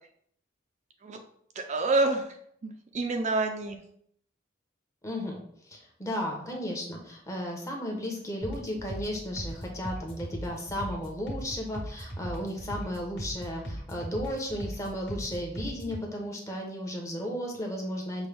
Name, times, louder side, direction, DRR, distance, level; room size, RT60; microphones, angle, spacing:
voice 1, 1.6-2.4 2.6-3.8, right 2 dB, 40° right, 4 dB, 0.4 m, -28 dB
voice 2, 5.0-5.4 5.7-18.3, equal, 15° left, 0 dB, 0.9 m, -34 dB
sound 1, 8.4-16.0, right 1 dB, 75° left, 1.4 m, -39 dB
6.0 x 2.2 x 3.4 m, 0.66 s
head